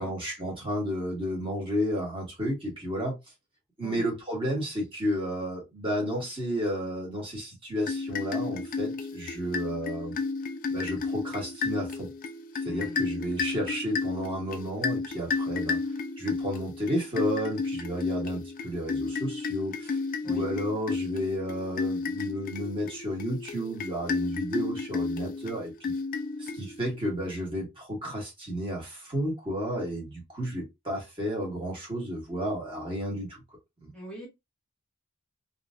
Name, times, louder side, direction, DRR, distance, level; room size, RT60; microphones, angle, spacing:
voice 1, 0.0-3.2 3.8-10.1 10.7-12.1 12.6-15.8 16.2-20.0 20.3-25.9 26.4-33.4, equal, 25° right, 1.4 m, -32 dB
sound 1, 7.8-27.0, left 4 dB, 40° left, 0.3 m, -33 dB
voice 2, 12.6-13.0 20.2-20.5 33.9-34.3, equal, 5° left, 1.4 m, -41 dB
3.1 x 2.6 x 2.4 m
head